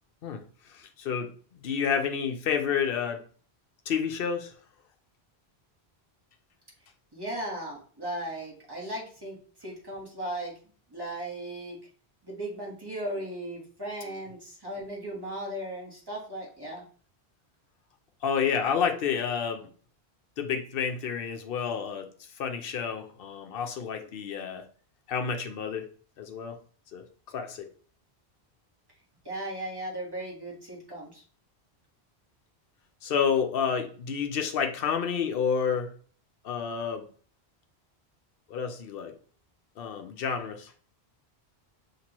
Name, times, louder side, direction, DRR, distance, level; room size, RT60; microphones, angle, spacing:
voice 1, 0.2-3.2 3.9-4.5 18.2-19.7 20.4-24.7 25.1-25.9 26.2-26.6 26.9-27.7 33.0-35.9 36.4-37.1 38.5-39.1 39.8-40.7, left 7 dB, 65° left, 0.8 m, -30 dB
voice 2, 7.1-10.5 10.9-11.9 12.2-16.8 29.2-31.2, right 1 dB, 20° right, 1.3 m, -37 dB
5.8 x 2.9 x 3.0 m
omnidirectional pair, 1.1 m